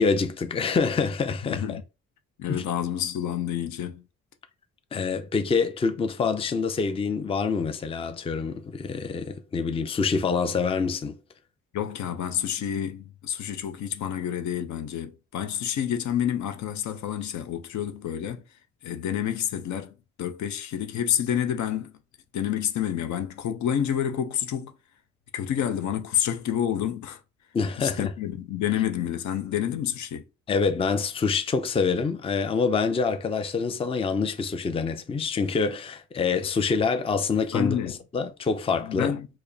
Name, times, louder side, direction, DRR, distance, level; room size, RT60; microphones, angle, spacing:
voice 1, 0.0-1.8 2.5-2.6 4.9-11.2 27.5-28.1 30.5-37.8 38.1-39.1, left 5 dB, 20° left, 0.4 m, -26 dB
voice 2, 1.4-1.8 2.4-4.0 11.7-18.4 18.8-21.9 22.3-24.7 25.3-27.2 27.8-30.2 37.5-37.9 38.8-39.3, left 10 dB, 70° left, 0.6 m, -29 dB
4.8 x 2.1 x 2.7 m
cardioid pair, 90°, 30 cm